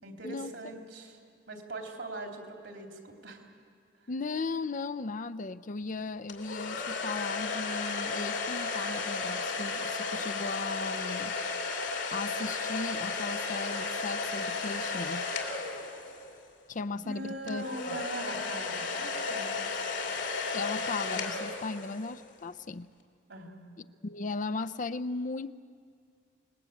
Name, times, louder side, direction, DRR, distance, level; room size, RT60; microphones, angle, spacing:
voice 1, 0.0-1.2 1.5-3.4 17.0-19.5 23.3-23.7, right 2 dB, 75° right, 3.6 m, -41 dB
voice 2, 4.1-11.4 11.6-15.3 16.7-18.0 20.5-22.9 24.0-25.5, left 3 dB, 45° left, 0.5 m, -37 dB
sound 1, 6.3-16.4 17.5-22.2, left 4 dB, 80° left, 2.7 m, -34 dB
27.5 x 20.0 x 8.3 m
head